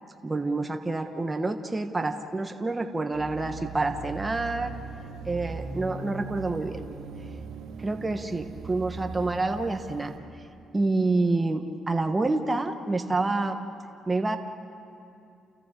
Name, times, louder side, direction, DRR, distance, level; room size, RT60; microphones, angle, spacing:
voice 1, 0.2-4.7 5.3-6.8 7.8-10.1 10.7-13.6 14.1-14.4, right 2 dB, 20° right, 5 dB, 1.2 m, -28 dB
sound 1, 3.1-10.2, right 5 dB, 90° right, 2.0 m, -39 dB
29.5 x 29.5 x 3.8 m, 2.7 s
cardioid pair, 90°, 0 cm